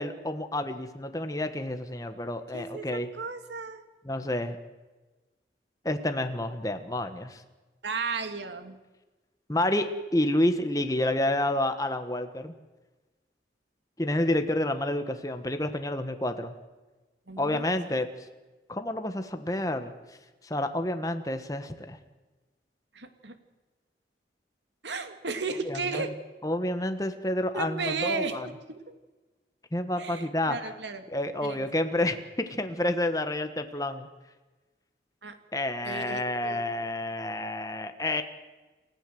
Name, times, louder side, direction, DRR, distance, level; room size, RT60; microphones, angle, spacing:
voice 1, 0.0-3.1 4.0-4.6 5.8-7.4 9.5-12.5 14.0-16.5 17.4-18.1 18.7-19.9 20.4-22.0 25.7-26.1 26.4-28.5 29.7-30.6 31.1-34.1 35.5-38.2, left 1 dB, 20° left, 8 dB, 1.4 m, -29 dB
voice 2, 2.5-3.8 7.8-8.8 17.3-17.6 22.9-23.4 24.8-26.1 27.5-28.4 28.7-28.9 30.0-31.0 31.4-31.6 35.2-35.4 35.8-36.6, right 4 dB, 85° right, 8 dB, 2.5 m, -34 dB
29.0 x 15.5 x 7.8 m, 1.2 s
head